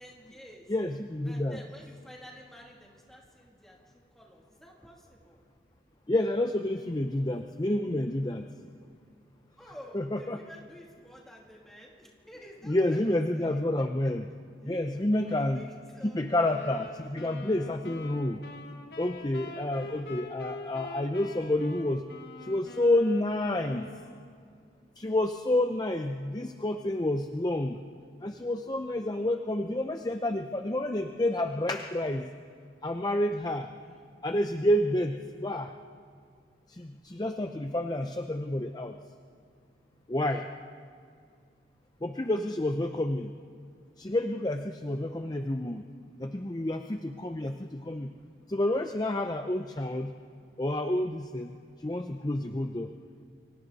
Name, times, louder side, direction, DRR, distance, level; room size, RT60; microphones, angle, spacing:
voice 1, 0.0-0.7 1.2-5.4 9.6-13.6 15.3-16.3 17.2-17.4 19.6-20.2 33.8-34.1, equal, ahead, -3 dB, 2.8 m, -51 dB
voice 2, 0.7-1.6 6.1-8.5 9.9-10.4 12.6-14.3 14.6-15.6 16.0-18.4 19.0-22.0 22.4-23.9 25.0-27.8 28.2-32.3 32.8-33.7 34.2-35.7 36.7-39.0 40.1-40.5 42.0-43.3 44.0-45.8 46.2-48.1 48.5-50.1 50.6-51.5 51.8-52.9, left 1 dB, 20° left, 6 dB, 0.6 m, -29 dB
sound 1, 16.3-24.3, left 2 dB, 60° left, 1.5 m, -45 dB
29.0 x 24.0 x 4.1 m, 2.2 s
head